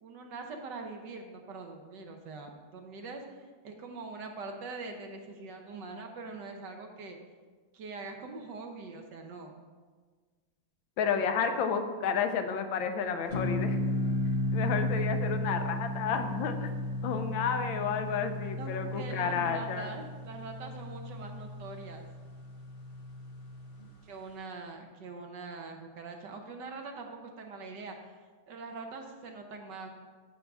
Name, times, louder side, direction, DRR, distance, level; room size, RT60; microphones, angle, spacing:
voice 1, 0.0-7.2 7.7-9.5 18.5-22.1 24.0-28.0 28.5-29.9, right 3 dB, 65° right, 3 dB, 1.3 m, -43 dB
voice 2, 11.0-13.8 14.5-16.7 17.0-19.9, left 6 dB, 75° left, 7 dB, 1.4 m, -31 dB
sound 1, 13.3-23.8, left 1 dB, 55° left, 0.6 m, -34 dB
14.5 x 5.3 x 3.5 m, 1.5 s
omnidirectional pair, 2.2 m